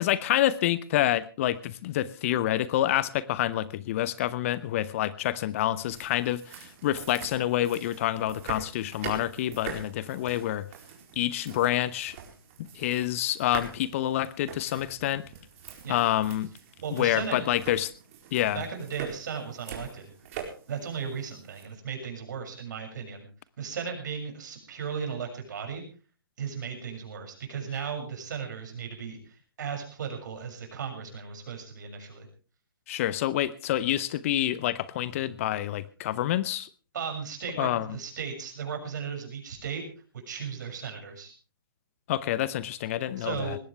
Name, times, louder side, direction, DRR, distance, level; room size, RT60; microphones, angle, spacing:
voice 1, 0.0-10.7 11.2-12.2 12.6-15.3 15.9-16.5 16.9-17.9 18.3-18.6 32.9-36.7 37.6-37.9 42.1-43.6, left 13 dB, 35° left, 18 dB, 0.8 m, -27 dB
sound 1, 5.8-21.6, right 8 dB, 40° right, 4.4 m, -44 dB
voice 2, 16.8-17.5 18.5-20.0 20.7-23.3 23.6-25.8 26.4-32.3 36.9-39.8 40.1-41.3 43.2-43.6, right 6 dB, 55° right, 4 dB, 6.9 m, -36 dB
20.0 x 16.5 x 3.4 m, 0.35 s
figure-of-eight pair, 130°, 12 cm